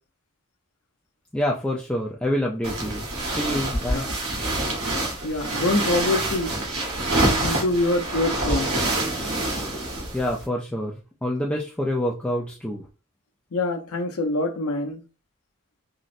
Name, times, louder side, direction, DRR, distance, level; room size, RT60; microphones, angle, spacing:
voice 1, 1.3-4.0 10.1-12.9, left 1 dB, 5° left, 0.3 m, -27 dB
sound 1, 2.6-10.4, right 1 dB, 80° right, 1.2 m, -26 dB
voice 2, 5.2-6.5 7.4-8.7 13.5-15.0, left 2 dB, 85° left, 0.7 m, -25 dB
3.7 x 2.0 x 2.5 m
head